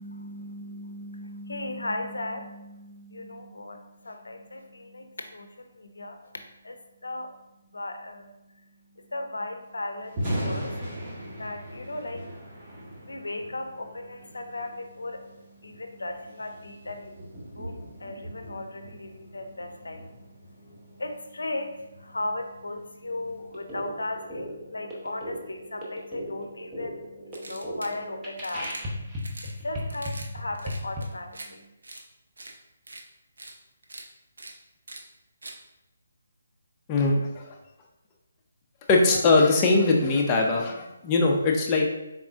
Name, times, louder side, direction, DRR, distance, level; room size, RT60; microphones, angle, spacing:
voice 1, 0.0-7.3 7.7-31.7, left 2 dB, 85° left, 6 dB, 0.6 m, -37 dB
Thunder, 10.0-24.2, equal, 30° right, 1.5 m, -39 dB
sound 1, 23.5-31.0, equal, 10° right, 0.8 m, -38 dB
sound 2, 27.3-28.0 28.4-28.8 29.2-29.5 29.9-30.3 30.5-31.5 31.8-32.0 32.4-32.5 32.9-33.0 33.4-33.5 33.8-34.0 34.4-34.5 34.9-35.0 35.4-35.6, right 2 dB, 75° right, 0.6 m, -42 dB
voice 2, 36.9-37.5 38.9-41.9, left 3 dB, 20° left, 0 dB, 0.6 m, -21 dB
4.2 x 3.5 x 2.5 m, 0.96 s
figure-of-eight pair, 150°, 0 cm